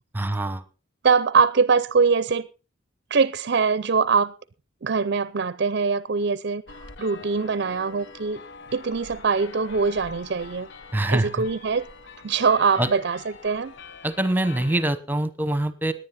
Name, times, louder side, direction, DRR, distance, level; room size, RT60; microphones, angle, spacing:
voice 1, 0.1-0.6 10.9-11.4 12.8-12.9 14.0-15.9, right 1 dB, 10° right, 1.0 m, -24 dB
voice 2, 1.0-2.5 3.1-4.3 4.8-8.4 8.7-10.7 11.1-11.9 12.2-13.7, right 5 dB, 55° right, 0.6 m, -23 dB
sound 1, 6.7-14.9, left 4 dB, 60° left, 0.8 m, -44 dB
18.5 x 10.5 x 4.2 m
head